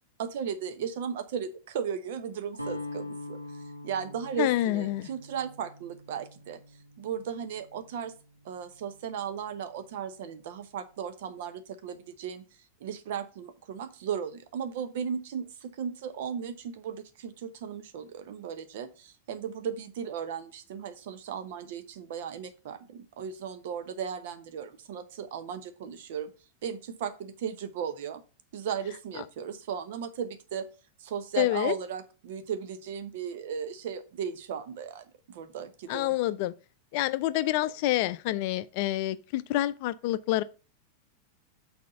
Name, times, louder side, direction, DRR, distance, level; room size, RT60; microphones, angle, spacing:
voice 1, 0.2-3.4 3.8-6.6 7.0-8.1 8.4-12.4 12.8-26.3 26.6-28.2 28.5-30.7 31.0-36.1, right 7 dB, 55° right, 0.9 m, -36 dB
Guitar, 2.5-8.6, left 2 dB, 90° right, 1.1 m, -43 dB
voice 2, 4.4-5.1 31.4-31.7 35.9-36.5 36.9-40.4, left 15 dB, 45° left, 0.4 m, -27 dB
6.2 x 4.3 x 5.5 m
figure-of-eight pair, 90°, 0 cm